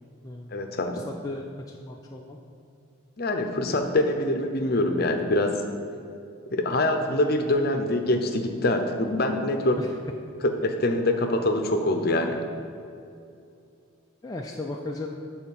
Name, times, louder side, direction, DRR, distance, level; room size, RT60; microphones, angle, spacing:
voice 1, 0.5-1.0 3.2-5.6 6.5-9.8 10.4-12.4, left 1 dB, 45° left, 5 dB, 0.7 m, -24 dB
voice 2, 1.1-2.4 9.8-9.9 14.2-15.1, left 2 dB, 15° left, 0 dB, 0.4 m, -36 dB
8.3 x 4.3 x 7.1 m, 2.5 s
head